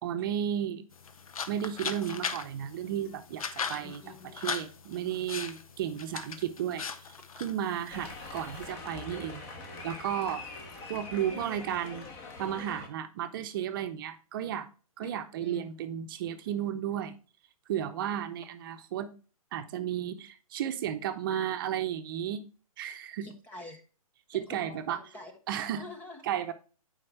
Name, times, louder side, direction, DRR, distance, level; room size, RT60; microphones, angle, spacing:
voice 1, 0.0-0.8 1.5-4.0 4.3-6.9 7.4-9.4 9.8-10.4 10.9-12.1 12.4-14.7 15.0-17.1 17.7-19.1 19.5-22.4 22.8-23.3 24.3-25.0 25.5-25.8 26.2-26.5, right 10 dB, 35° right, 8 dB, 0.7 m, -33 dB
sound 1, 0.9-8.7, left 6 dB, 70° left, 0.9 m, -39 dB
voice 2, 3.8-4.3 15.0-15.1 15.4-15.7 23.2-23.8 24.3-25.3 25.6-26.2, left 2 dB, 10° left, 5 dB, 0.5 m, -46 dB
sound 2, 7.9-12.9, left 3 dB, 30° left, 1.4 m, -43 dB
7.6 x 4.9 x 4.5 m, 0.37 s
hypercardioid pair, 145°, 19 cm